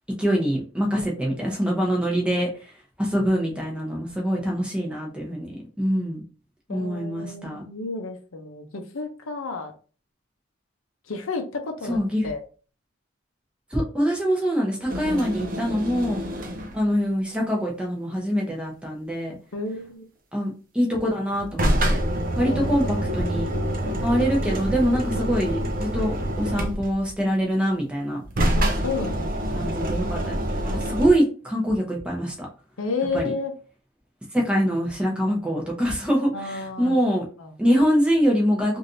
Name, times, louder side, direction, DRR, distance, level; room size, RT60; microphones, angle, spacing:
voice 1, 0.2-2.7 3.0-6.2 6.7-7.6 11.9-12.3 13.7-16.2 16.7-19.4 20.3-22.0 22.4-23.5 24.0-28.2 29.5-32.5 33.1-33.3 34.3-37.2 37.6-38.8, equal, 5° right, -2 dB, 0.7 m, -24 dB
voice 2, 6.7-9.7 11.1-12.0 12.2-12.4 19.5-20.0 22.4-23.0 28.6-29.7 32.8-33.5 36.3-37.0 37.4-37.5, left 4 dB, 70° left, 5 dB, 0.6 m, -31 dB
sound 1, 14.9-16.9 21.3-27.1 28.2-31.1, equal, 40° right, 0.5 m, -26 dB
3.2 x 2.6 x 2.6 m, 0.36 s
head